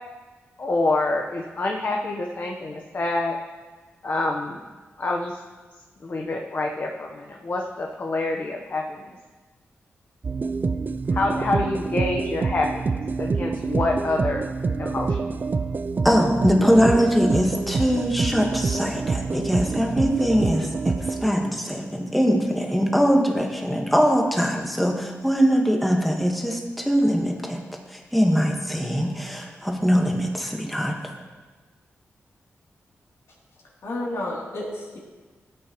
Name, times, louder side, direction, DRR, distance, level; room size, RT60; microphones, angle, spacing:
voice 1, 0.6-3.4 4.0-4.6 5.0-5.4 6.0-9.1 11.1-14.5 14.8-15.3, left 2 dB, 45° left, 1 dB, 1.0 m, -27 dB
sound 1, 10.2-21.3, right 4 dB, 40° right, 0.5 m, -27 dB
voice 2, 16.0-27.6 27.9-31.0, equal, ahead, 1 dB, 1.5 m, -22 dB
voice 3, 33.5-35.0, left 1 dB, 80° left, -4 dB, 3.0 m, -32 dB
15.0 x 8.7 x 3.1 m, 1.3 s
cardioid pair, 80°, 5 cm